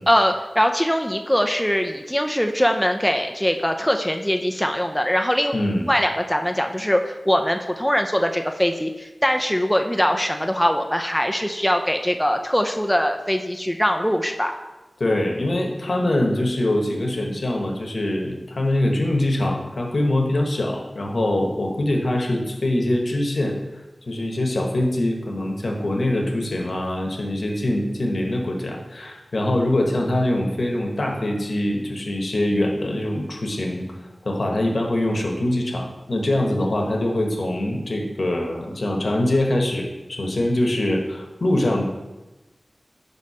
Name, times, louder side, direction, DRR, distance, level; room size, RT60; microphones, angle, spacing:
voice 1, 0.1-5.5 5.9-14.6, equal, 5° left, 4 dB, 0.4 m, -22 dB
voice 2, 5.5-5.9 15.0-23.6 24.1-41.8, left 1 dB, 70° left, 1 dB, 0.9 m, -23 dB
5.3 x 4.2 x 4.8 m, 1.1 s
wide cardioid pair, 70°, 0 cm